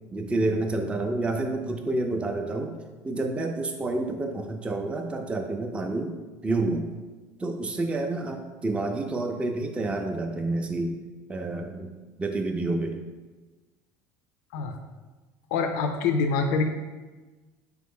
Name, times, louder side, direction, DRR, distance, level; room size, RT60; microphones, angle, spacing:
voice 1, 0.1-2.8 3.0-6.2 6.4-6.9 7.4-10.9 11.3-11.9 12.2-13.1, right 2 dB, 15° right, 3 dB, 0.4 m, -29 dB
voice 2, 15.5-16.6, left 4 dB, 85° left, 5 dB, 0.4 m, -25 dB
3.8 x 3.0 x 3.6 m, 1.3 s
supercardioid pair, 100°, 9 cm